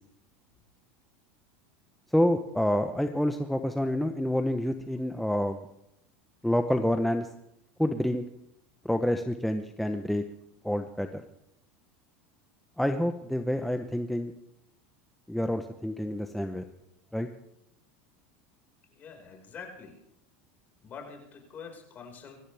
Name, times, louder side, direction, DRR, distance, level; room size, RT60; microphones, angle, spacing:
voice 1, 2.1-5.6 6.4-7.3 7.8-8.3 8.8-10.2 10.6-11.2 12.8-14.3 15.3-16.6 17.1-17.3, left 1 dB, ahead, 6 dB, 0.9 m, -28 dB
voice 2, 19.0-20.0 20.8-22.4, left 5 dB, 35° left, 2 dB, 5.1 m, -45 dB
24.5 x 14.5 x 3.5 m, 0.83 s
supercardioid pair, 115°, 6 cm